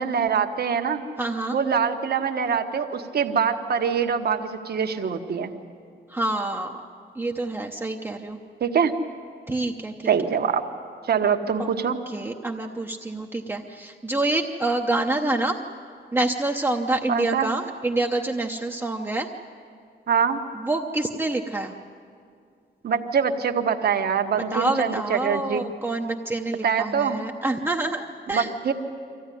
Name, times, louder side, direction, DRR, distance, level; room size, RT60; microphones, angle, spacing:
voice 1, 0.0-1.0 1.5-5.5 8.6-8.9 10.1-10.6 11.1-12.0 17.1-17.5 20.1-20.4 22.8-25.6 26.6-27.2 28.3-28.7, right 7 dB, 60° right, 6 dB, 1.3 m, -24 dB
voice 2, 1.2-1.6 6.1-6.8 7.2-8.4 9.5-10.1 11.6-11.7 12.1-15.6 16.1-19.3 20.5-21.7 24.5-28.5, right 2 dB, 10° right, 0 dB, 0.8 m, -27 dB
24.0 x 15.5 x 9.9 m, 2.3 s
wide cardioid pair, 160°, 19 cm